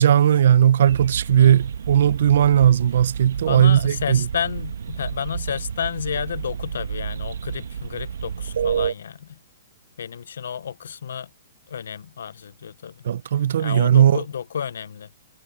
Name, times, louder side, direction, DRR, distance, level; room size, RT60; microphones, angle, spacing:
voice 1, 0.0-4.3 13.0-14.2, right 10 dB, 55° right, 0.5 m, -17 dB
sound 1, 0.9-8.9, right 7 dB, 85° right, 1.4 m, -30 dB
voice 2, 3.5-9.4 10.0-11.3 11.7-13.0 13.6-15.1, left 8 dB, 75° left, 0.5 m, -31 dB
hypercardioid pair, 175°, 0 cm